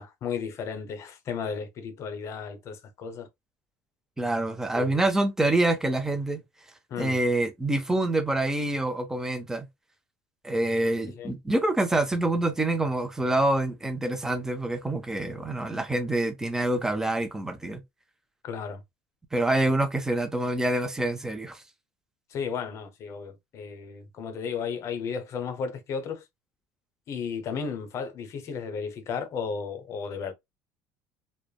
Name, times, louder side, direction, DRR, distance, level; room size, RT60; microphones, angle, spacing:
voice 1, 0.0-3.3 4.7-5.0 6.9-7.2 11.1-11.3 18.4-18.8 22.3-26.2 27.1-30.3, left 6 dB, 45° left, 0.7 m, -34 dB
voice 2, 4.2-6.4 7.0-9.7 10.4-17.8 19.3-21.6, right 2 dB, 5° right, 0.5 m, -26 dB
3.2 x 2.0 x 2.2 m
cardioid pair, 120°, 7 cm